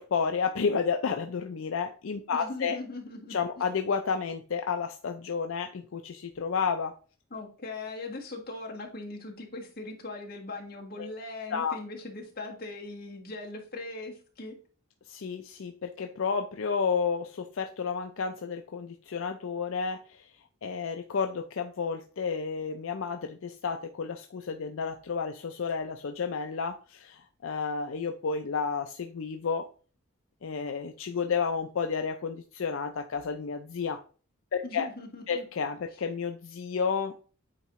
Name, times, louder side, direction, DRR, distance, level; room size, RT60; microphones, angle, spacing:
voice 1, 0.0-2.8 3.3-6.9 11.0-11.1 11.5-11.8 15.1-20.3 20.6-29.7 30.4-34.0 34.5-34.9 35.3-37.2, left 5 dB, 70° left, 5 dB, 0.5 m, -31 dB
voice 2, 2.3-3.4 7.3-14.6 34.6-35.4, left 2 dB, 45° left, -1 dB, 1.5 m, -40 dB
8.7 x 3.6 x 3.0 m, 0.39 s
head